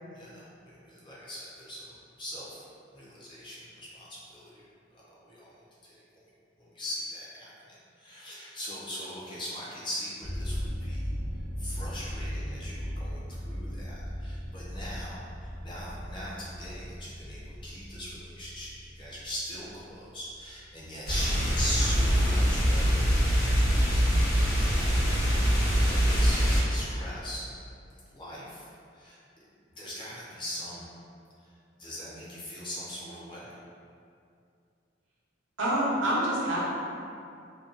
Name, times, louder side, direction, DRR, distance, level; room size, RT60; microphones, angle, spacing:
voice 1, 0.1-2.6 2.9-4.6 4.9-5.5 5.8-6.0 6.6-11.1 11.6-24.2 24.7-25.0 25.7-27.6 28.1-29.2 29.8-30.9 31.4-33.5, equal, 25° left, -8 dB, 0.5 m, -40 dB
sound 1, 10.2-21.0, equal, 40° right, 0.5 m, -38 dB
sound 2, 21.0-26.6, equal, 55° left, 1.0 m, -24 dB
voice 2, 35.6-36.6, right 1 dB, 85° right, -7 dB, 0.7 m, -26 dB
2.6 x 2.2 x 2.4 m, 2.5 s
head